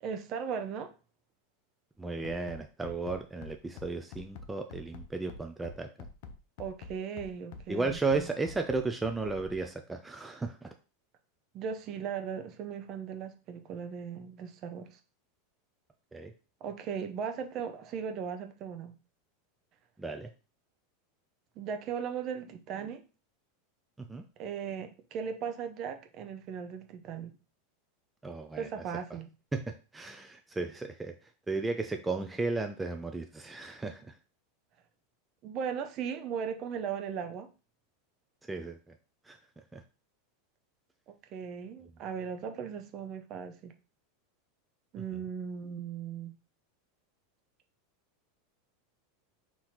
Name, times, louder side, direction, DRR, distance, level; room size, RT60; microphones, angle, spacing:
voice 1, 0.0-0.9 6.6-8.3 11.5-15.0 16.6-18.9 21.6-23.0 24.4-27.3 28.6-29.3 35.4-37.5 41.3-43.7 44.9-46.3, right 7 dB, 45° right, 0.7 m, -37 dB
voice 2, 2.0-5.9 7.7-10.8 16.1-16.3 20.0-20.3 24.0-24.2 28.2-28.7 29.5-34.2 38.5-39.0 39.2-39.8 45.1-45.2, right 3 dB, 10° right, 0.5 m, -34 dB
Bass drum, 2.2-9.6, left 4 dB, 60° left, 0.6 m, -46 dB
4.2 x 2.9 x 3.9 m
hypercardioid pair, 90°, 0 cm